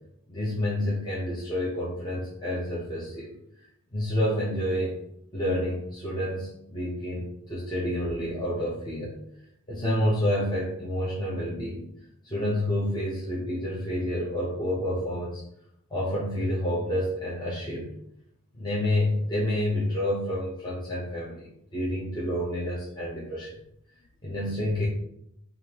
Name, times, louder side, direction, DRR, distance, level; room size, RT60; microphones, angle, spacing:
voice 1, 0.3-3.3 3.9-5.0 5.3-9.2 9.7-11.8 12.2-15.4 15.9-17.9 18.5-23.5 24.2-24.9, left 1 dB, 20° left, -7 dB, 0.8 m, -29 dB
5.0 x 2.5 x 2.9 m, 0.76 s
head